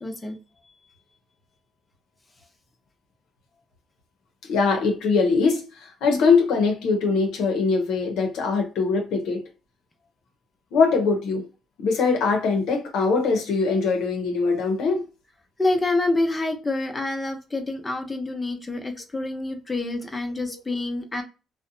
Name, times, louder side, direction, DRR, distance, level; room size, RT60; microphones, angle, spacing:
voice 1, 0.0-0.4 15.6-21.2, left 2 dB, 20° left, 0.7 m, -27 dB
voice 2, 4.5-9.4 10.7-11.5 11.8-15.0, left 4 dB, 85° left, 0.7 m, -22 dB
2.6 x 2.1 x 2.6 m
cardioid pair, 90°, 0 cm